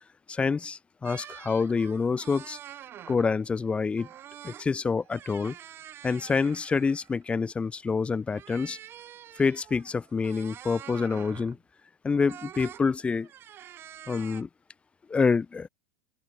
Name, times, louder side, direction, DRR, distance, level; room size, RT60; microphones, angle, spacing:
voice 1, 0.3-2.6 3.1-4.1 4.4-5.5 6.0-8.8 9.4-11.6 12.0-13.3 14.1-14.5 15.1-15.7, left 5 dB, 15° left, 2.6 m, -27 dB
sound 1, 1.0-3.4 4.0-4.7 5.0-7.2 8.3-11.6 12.3-12.8 13.2-14.4, right 11 dB, 35° right, 3.2 m, -47 dB
hypercardioid pair, 110°, 6 cm